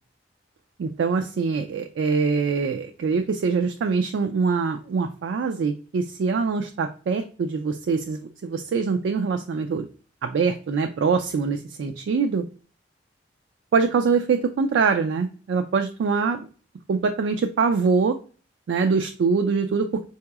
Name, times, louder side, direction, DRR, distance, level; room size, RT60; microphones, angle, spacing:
voice 1, 0.8-9.9 10.2-12.4 13.7-16.4 16.9-18.2 18.7-20.0, right 5 dB, 80° right, 6 dB, 0.3 m, -24 dB
4.6 x 2.8 x 2.3 m, 0.39 s
head